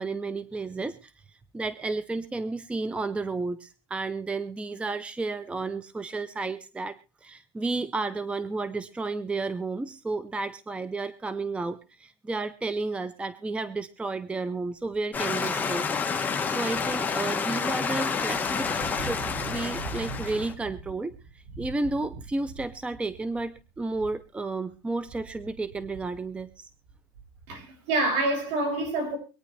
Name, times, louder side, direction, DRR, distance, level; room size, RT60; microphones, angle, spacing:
voice 1, 0.0-15.9 16.2-21.1 21.6-26.7, right 3 dB, 10° right, 0.7 m, -32 dB
sound 1, 14.8-15.1 15.6-24.4 24.7-27.6, right 4 dB, 90° right, 2.5 m, -43 dB
sound 2, 15.1-20.5, left 5 dB, 15° left, 1.5 m, -29 dB
voice 2, 27.5-29.2, right 2 dB, 60° right, 6.6 m, -27 dB
24.0 x 9.5 x 3.3 m
supercardioid pair, 145°, 13 cm